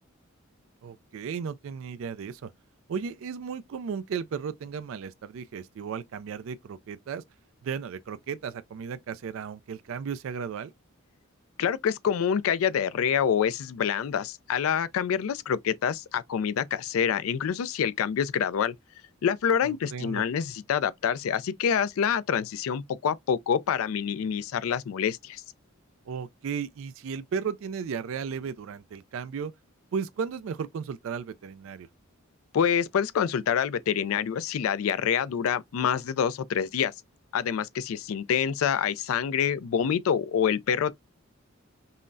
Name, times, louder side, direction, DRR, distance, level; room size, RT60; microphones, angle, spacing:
voice 1, 0.8-2.5 2.9-7.2 7.6-10.7 19.6-20.2 26.1-29.5 29.9-31.9, right 6 dB, 65° right, 0.3 m, -35 dB
voice 2, 11.6-18.7 19.2-25.4 32.5-36.9 37.3-40.9, left 8 dB, 75° left, 0.4 m, -26 dB
5.4 x 2.1 x 2.5 m
head